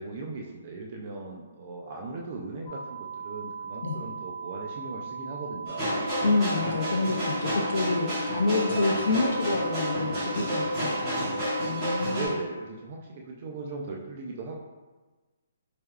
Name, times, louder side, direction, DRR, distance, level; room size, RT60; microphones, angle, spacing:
voice 1, 0.0-5.9 12.0-14.6, right 3 dB, 30° right, 0 dB, 0.3 m, -38 dB
sound 1, 2.7-12.3, right 6 dB, 20° left, 0.6 m, -38 dB
sound 2, 5.7-12.3, equal, 5° right, 1.2 m, -30 dB
voice 2, 6.2-12.4, left 3 dB, 65° left, 2 dB, 0.4 m, -28 dB
4.5 x 3.3 x 2.3 m, 1.3 s
hypercardioid pair, 175°, 0 cm